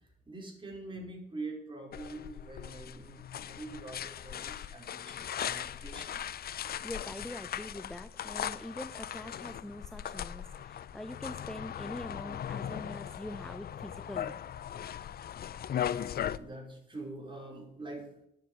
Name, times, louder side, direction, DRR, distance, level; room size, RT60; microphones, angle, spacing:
voice 1, 0.3-6.2 15.9-18.3, right 2 dB, 25° right, 0 dB, 4.8 m, -45 dB
sound 1, 1.9-16.4, left 10 dB, 50° left, 0.6 m, -39 dB
voice 2, 6.8-14.4, left 1 dB, 5° left, 13 dB, 0.5 m, -44 dB
9.5 x 7.5 x 9.2 m, 0.80 s
cardioid pair, 90°, 20 cm